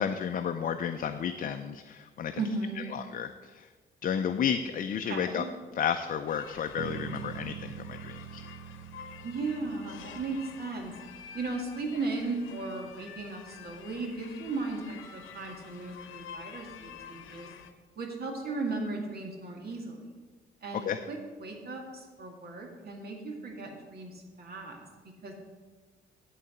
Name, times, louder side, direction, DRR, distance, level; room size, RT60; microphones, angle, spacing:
voice 1, 0.0-2.3 2.9-3.7 4.0-5.5 5.7-8.4 20.8-21.0, left 8 dB, 45° left, 7 dB, 0.5 m, -32 dB
voice 2, 2.4-2.9 5.1-5.5 9.2-10.9 11.3-17.5 18.0-20.0 20.6-24.8 25.2-25.3, right 3 dB, 50° right, 1 dB, 2.1 m, -36 dB
sound 1, 6.3-17.7, left 8 dB, 85° left, 0.8 m, -49 dB
sound 2, 6.8-11.1, right 9 dB, 70° right, 0.4 m, -43 dB
11.0 x 4.0 x 7.6 m, 1.4 s
cardioid pair, 90°, 20 cm